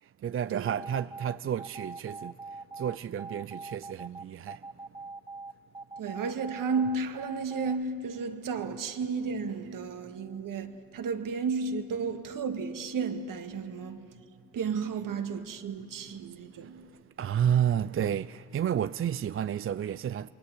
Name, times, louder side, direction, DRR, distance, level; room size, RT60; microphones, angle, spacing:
voice 1, 0.0-4.7 8.6-8.8 16.6-16.7 17.2-20.3, right 9 dB, 35° right, 0.5 m, -31 dB
sound 1, 0.6-7.8, right 3 dB, 15° right, 0.9 m, -42 dB
voice 2, 6.0-14.1 14.5-16.9, right 5 dB, 65° right, 2.0 m, -33 dB
27.5 x 23.0 x 8.1 m
supercardioid pair, 60°, 36 cm